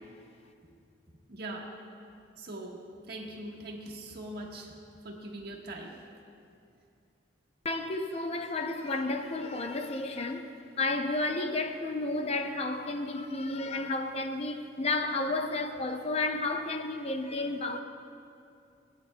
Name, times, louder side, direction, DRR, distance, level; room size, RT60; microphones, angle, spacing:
voice 1, 1.3-1.7 2.4-2.8 3.1-4.7 5.0-6.0, right 1 dB, 55° right, 1.3 m, -41 dB
voice 2, 7.6-10.5 10.8-17.8, left 2 dB, 35° left, 0.5 m, -32 dB
20.0 x 8.7 x 2.2 m
head